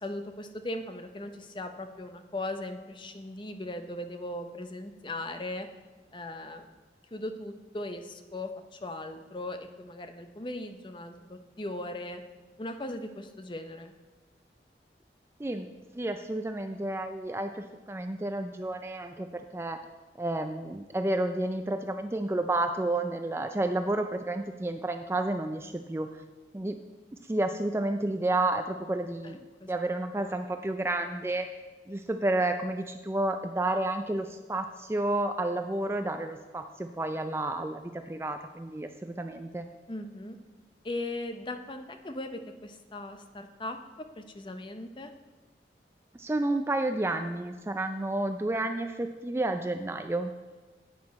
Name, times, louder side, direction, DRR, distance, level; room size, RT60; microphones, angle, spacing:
voice 1, 0.0-5.7 6.1-6.7 7.1-12.2 12.6-13.9 29.2-29.8 30.2-30.3 39.9-40.4 40.8-45.1, left 1 dB, 25° left, 7 dB, 0.6 m, -38 dB
voice 2, 16.0-19.8 20.2-26.1 26.5-26.8 27.3-29.4 29.7-31.5 31.9-37.8 38.1-39.6 46.1-50.3, right 2 dB, 15° right, 7 dB, 0.3 m, -30 dB
10.5 x 8.6 x 4.2 m, 1.3 s
head